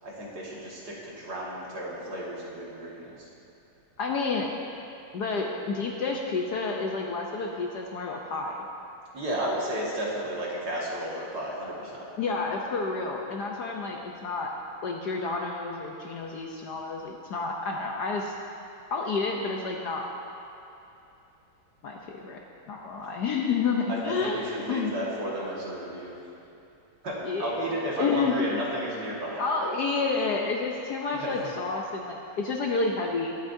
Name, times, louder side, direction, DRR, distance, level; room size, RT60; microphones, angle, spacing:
voice 1, 0.0-3.3 9.1-12.1 23.9-26.1 27.0-29.4 31.2-31.5, right 1 dB, 55° right, -5 dB, 2.3 m, -33 dB
voice 2, 4.0-4.5 5.1-8.5 12.2-14.5 14.8-18.3 18.9-20.1 21.8-22.4 22.7-24.9 27.2-28.5 29.4-33.3, left 4 dB, 65° left, 0 dB, 1.1 m, -30 dB
21.5 x 8.1 x 2.7 m, 2.8 s
omnidirectional pair, 2.2 m